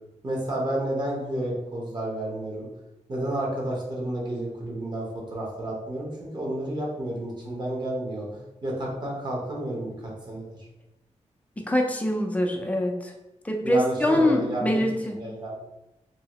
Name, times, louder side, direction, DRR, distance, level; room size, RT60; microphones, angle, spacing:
voice 1, 0.2-2.7 3.1-10.5 13.6-14.8 15.1-15.6, right 1 dB, 35° right, -3 dB, 0.9 m, -31 dB
voice 2, 11.6-13.1 13.4-15.2, left 1 dB, 10° left, 1 dB, 0.4 m, -24 dB
2.7 x 2.7 x 2.9 m, 0.94 s
wide cardioid pair, 140°, 12 cm